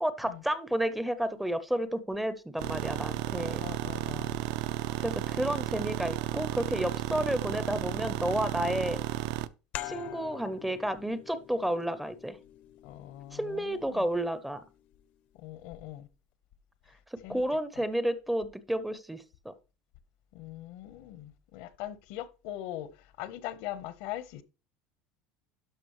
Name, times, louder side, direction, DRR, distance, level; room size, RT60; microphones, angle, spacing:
voice 1, 0.0-3.6 5.0-9.0 9.8-12.4 13.3-14.6 17.1-19.5, right 1 dB, 5° right, 0.5 m, -31 dB
sound 1, 2.6-9.5, right 15 dB, 70° right, 0.5 m, -33 dB
voice 2, 3.3-4.4 12.8-14.1 15.3-16.1 16.9-17.0 17.2-17.4 17.7-17.8 20.3-24.4, left 13 dB, 70° left, 0.9 m, -41 dB
sound 2, 9.7-15.0, left 13 dB, 50° left, 0.6 m, -46 dB
12.5 x 5.0 x 3.0 m
cardioid pair, 155°, 3 cm